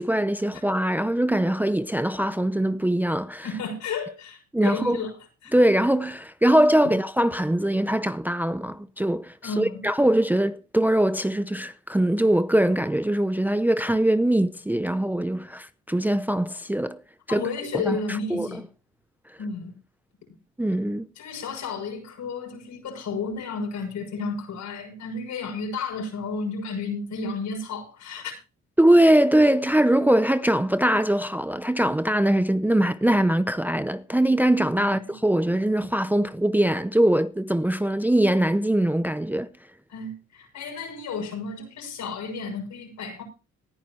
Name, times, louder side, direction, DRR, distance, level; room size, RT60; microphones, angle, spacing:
voice 1, 0.0-3.5 4.5-5.0 5.5-17.0 17.3-18.5 20.6-21.1 28.8-39.5, right 1 dB, 5° right, 0.6 m, -22 dB
voice 2, 3.4-5.2 5.4-5.5 9.4-9.8 17.3-18.6 19.4-19.7 21.2-28.3 34.8-35.0 39.9-43.2, left 4 dB, 70° left, 6.5 m, -32 dB
19.0 x 10.5 x 2.9 m
cardioid pair, 90°, 30 cm